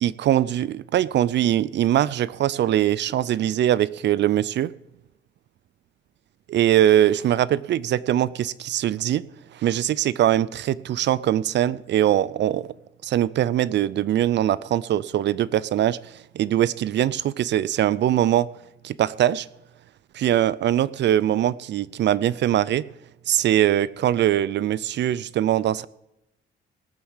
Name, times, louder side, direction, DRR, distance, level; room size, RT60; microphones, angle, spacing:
voice 1, 0.0-4.7 6.5-9.2 9.5-12.7 13.0-18.5 18.8-19.5 20.1-22.8 23.3-25.9, right 12 dB, 65° right, 0.5 m, -22 dB
18.5 x 7.1 x 7.3 m
cardioid pair, 90°, 20 cm